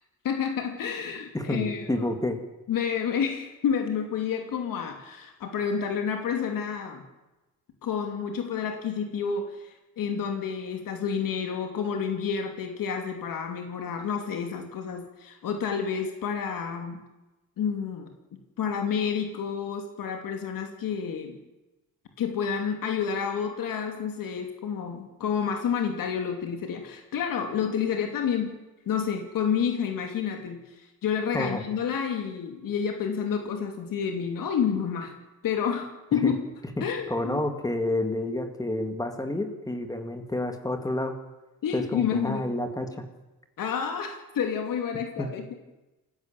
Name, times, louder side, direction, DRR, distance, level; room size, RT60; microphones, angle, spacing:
voice 1, 0.2-2.1 2.7-7.0 7.8-17.0 17.6-18.1 18.6-21.4 22.2-28.5 28.9-30.6 31.0-35.1 35.4-36.4 36.8-37.4 41.6-42.5 43.6-45.5, left 7 dB, 70° left, 4 dB, 2.8 m, -29 dB
voice 2, 1.3-2.4 31.3-31.6 36.2-36.3 36.8-41.1 41.7-42.9 45.2-45.3, left 1 dB, 10° left, 6 dB, 2.1 m, -29 dB
28.5 x 16.0 x 7.2 m, 1.0 s
cardioid pair, 175°, 35 cm